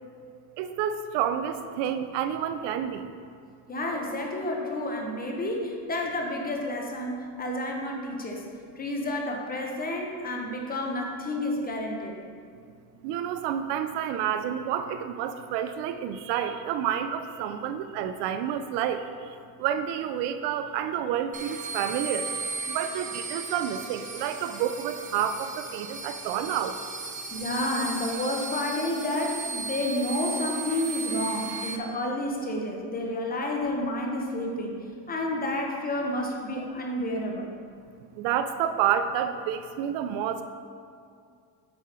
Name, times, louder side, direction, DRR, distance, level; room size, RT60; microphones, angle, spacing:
voice 1, 0.6-3.1 13.0-22.3 22.7-26.8 38.1-40.4, right 9 dB, 75° right, 9 dB, 0.5 m, -29 dB
voice 2, 3.7-8.4 8.8-12.2 27.3-34.8 35.1-37.5, left 1 dB, 20° left, 0 dB, 0.8 m, -30 dB
sound 1, 21.3-31.8, right 4 dB, 20° right, 0.3 m, -36 dB
7.7 x 4.8 x 4.3 m, 2.3 s
cardioid pair, 145°, 42 cm